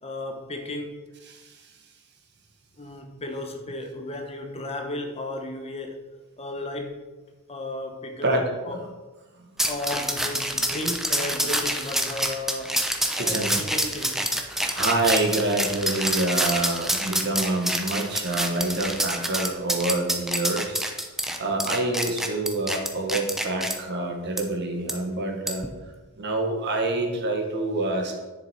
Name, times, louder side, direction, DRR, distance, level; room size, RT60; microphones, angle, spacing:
voice 1, 0.0-1.1 2.8-6.1 6.4-7.1 7.5-9.0 9.6-12.8 13.2-14.3, left 1 dB, 30° left, 1.0 m, -34 dB
voice 2, 1.3-1.7 8.2-8.9 9.4-9.5 13.1-13.6 14.5-20.8 21.4-25.6 26.2-28.2, right 2 dB, 50° right, 1.6 m, -27 dB
sound 1, 9.6-23.7 24.4-24.5 24.9-25.0 25.5-25.7, right 1 dB, ahead, 0.8 m, -27 dB
10.5 x 6.8 x 4.5 m
head